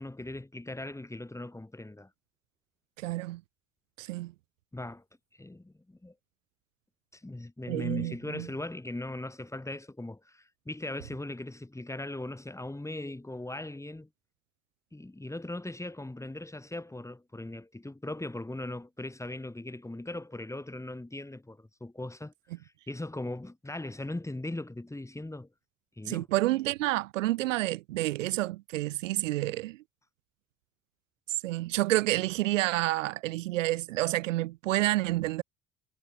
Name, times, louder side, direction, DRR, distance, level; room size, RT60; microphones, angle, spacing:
voice 1, 0.0-2.1 4.7-5.0 5.4-6.1 7.1-14.1 14.9-22.3 22.6-25.5 26.0-26.3, left 2 dB, 5° left, 1.9 m, -39 dB
voice 2, 3.0-3.4 4.0-4.3 7.7-8.5 26.1-29.8 31.4-35.4, right 17 dB, 70° right, 0.6 m, -29 dB
figure-of-eight pair, 55°, 39 cm